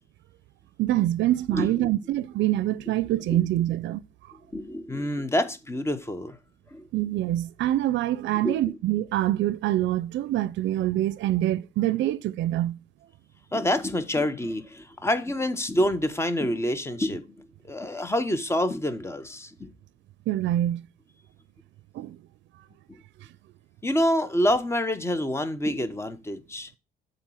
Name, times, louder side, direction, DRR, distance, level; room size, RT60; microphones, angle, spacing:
voice 1, 0.8-4.0 6.9-12.8 20.3-20.8 21.9-22.2, right 14 dB, 75° right, 0.4 m, -25 dB
voice 2, 1.5-1.9 3.3-3.4 4.5-6.4 6.7-6.9 8.4-8.6 13.5-19.7 22.9-23.0 23.8-26.7, left 1 dB, 15° left, 0.9 m, -27 dB
7.3 x 4.1 x 6.1 m
cardioid pair, 125°, 19 cm